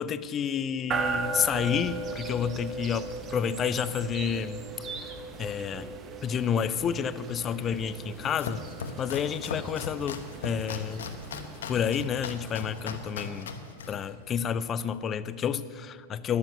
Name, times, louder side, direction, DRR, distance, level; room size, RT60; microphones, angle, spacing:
voice 1, 0.0-4.7 5.4-5.9 6.2-8.6 9.0-11.1 11.7-13.5 13.9-16.4, left 8 dB, 30° left, 15 dB, 0.5 m, -30 dB
sound 1, 0.9-13.9, right 4 dB, 30° right, 1.0 m, -38 dB
Domestic sounds home sounds, 8.0-15.0, left 5 dB, 85° left, 1.0 m, -39 dB
10.5 x 7.1 x 9.3 m, 2.4 s
hypercardioid pair, 115°, 0 cm